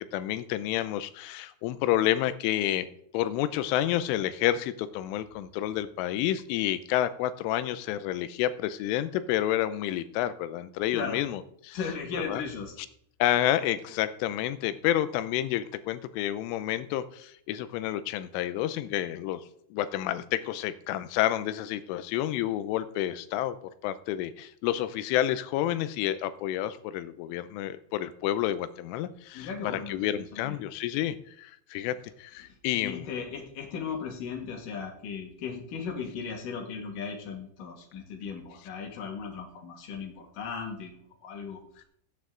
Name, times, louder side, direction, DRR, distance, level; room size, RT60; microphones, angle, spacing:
voice 1, 0.1-2.9 3.1-11.8 12.1-12.4 13.2-23.6 23.8-33.0, left 13 dB, 80° left, 13 dB, 3.1 m, -29 dB
voice 2, 11.7-12.8 29.3-30.6 32.4-41.8, left 5 dB, 55° left, 2 dB, 2.8 m, -37 dB
16.5 x 9.5 x 3.8 m, 0.68 s
omnidirectional pair, 5.9 m